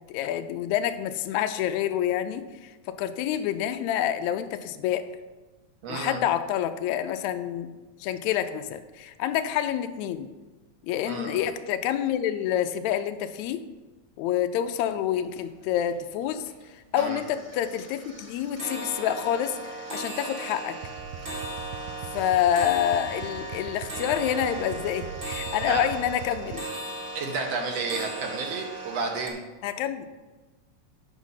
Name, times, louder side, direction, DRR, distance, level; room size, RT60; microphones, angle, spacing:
voice 1, 0.1-5.1 5.9-7.7 8.0-10.3 10.8-13.6 14.2-20.8 22.1-26.7 29.6-30.1, left 10 dB, 80° left, 9 dB, 1.8 m, -28 dB
voice 2, 5.8-6.2 11.1-11.4 17.0-17.2 25.6-25.9 27.1-29.4, right 4 dB, 65° right, 2 dB, 2.0 m, -31 dB
sound 1, 14.9-15.0 15.3-15.9 16.3-16.6 16.9-29.3, right 2 dB, 50° right, 0.6 m, -37 dB
sound 2, 20.8-26.6, right 6 dB, 85° right, 1.5 m, -41 dB
8.2 x 6.2 x 5.5 m, 1.2 s
omnidirectional pair, 3.5 m